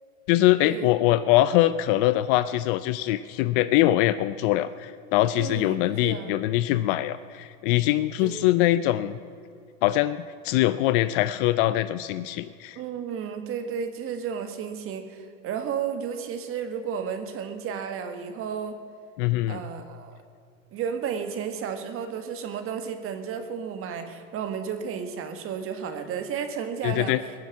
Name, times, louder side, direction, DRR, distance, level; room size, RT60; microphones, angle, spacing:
voice 1, 0.3-9.2 9.8-12.8 19.2-19.6 26.8-27.2, left 15 dB, 40° left, 14 dB, 0.5 m, -23 dB
voice 2, 5.4-6.3 8.2-8.5 12.8-18.8 19.5-20.2 20.7-27.2, right 7 dB, 30° right, 7 dB, 1.8 m, -33 dB
22.0 x 7.7 x 8.4 m, 2.4 s
supercardioid pair, 130°, 41 cm